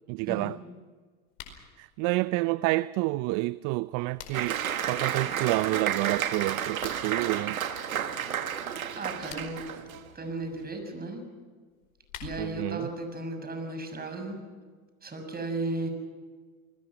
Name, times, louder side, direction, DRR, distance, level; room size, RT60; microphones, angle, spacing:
voice 1, 0.1-0.6 1.8-7.6 12.4-12.9, right 21 dB, 50° right, 0.6 m, -29 dB
sound 1, 1.3-1.6 3.7-4.6 6.7-7.0 9.1-9.7 11.7-12.7, left 7 dB, 70° left, 4.8 m, -46 dB
Applause, 4.3-10.1, right 9 dB, 90° right, 1.6 m, -31 dB
voice 2, 8.9-9.6 10.1-11.2 12.2-14.4 15.0-15.9, right 2 dB, 20° right, 6.8 m, -35 dB
28.5 x 20.5 x 6.1 m
hypercardioid pair, 80°, 41 cm